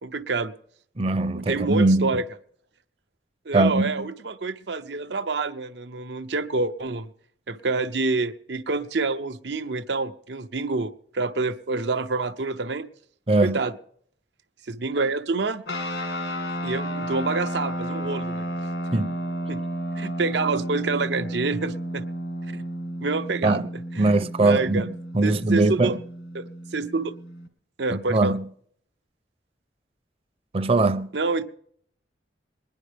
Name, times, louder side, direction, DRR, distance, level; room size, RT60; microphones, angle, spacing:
voice 1, 0.0-0.5 1.4-2.2 3.5-7.1 7.5-12.9 13.4-13.7 14.7-15.6 16.6-18.5 19.5-19.6 20.0-22.0 22.5-22.6 23.0-23.6 23.9-24.1 24.4-24.9 25.2-26.0 26.3-27.1 27.8-28.4 31.1-31.4, right 3 dB, 80° right, 0.8 m, -27 dB
voice 2, 1.0-2.2 3.5-4.1 13.3-13.6 18.9-19.1 23.4-23.7 24.0-26.0 27.9-28.4 30.5-31.1, right 2 dB, 35° right, 0.6 m, -21 dB
sound 1, 15.7-27.5, equal, 80° left, 1.7 m, -32 dB
21.0 x 10.5 x 3.5 m
head